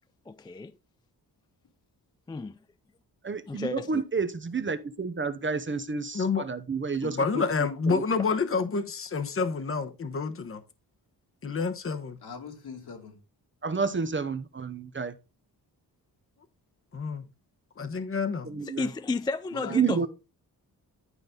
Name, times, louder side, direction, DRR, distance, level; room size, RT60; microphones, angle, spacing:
voice 1, 0.3-0.7 2.3-2.6 3.5-4.0 18.6-20.1, left 3 dB, 10° left, 0.3 m, -32 dB
voice 2, 3.2-7.4 7.9-8.0 13.6-15.1 18.5-18.9 19.7-20.1, right 5 dB, 30° right, 0.8 m, -30 dB
voice 3, 6.1-6.4 7.0-10.6 11.4-12.2 16.9-17.2 17.8-18.5, left 4 dB, 35° left, 1.1 m, -28 dB
voice 4, 12.2-13.2 19.5-20.1, left 5 dB, 70° left, 2.7 m, -40 dB
11.0 x 5.2 x 3.8 m
wide cardioid pair, 115°, 39 cm